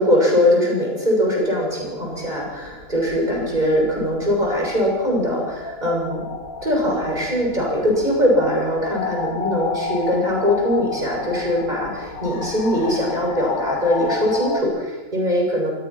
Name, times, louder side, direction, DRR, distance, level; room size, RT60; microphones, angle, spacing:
voice 1, 0.0-6.2 6.6-15.7, equal, 30° right, -1 dB, 7.3 m, -21 dB
sound 1, 1.4-14.6, left 4 dB, 85° left, 2.2 m, -32 dB
26.5 x 19.5 x 6.0 m, 1.2 s
omnidirectional pair, 1.4 m